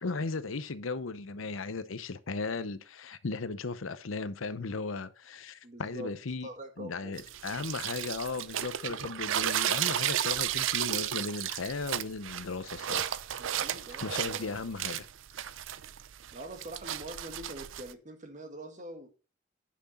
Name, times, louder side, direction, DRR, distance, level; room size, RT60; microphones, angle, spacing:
voice 1, 0.0-6.5 6.8-13.2 14.0-15.1 15.4-15.5, left 4 dB, 80° left, 0.8 m, -36 dB
voice 2, 5.6-6.1 6.4-7.1 10.5-10.6 13.4-14.6 16.3-19.1, right 1 dB, 40° right, 1.8 m, -44 dB
sound 1, 7.2-17.9, right 11 dB, 70° right, 0.5 m, -33 dB
10.0 x 6.2 x 4.2 m
head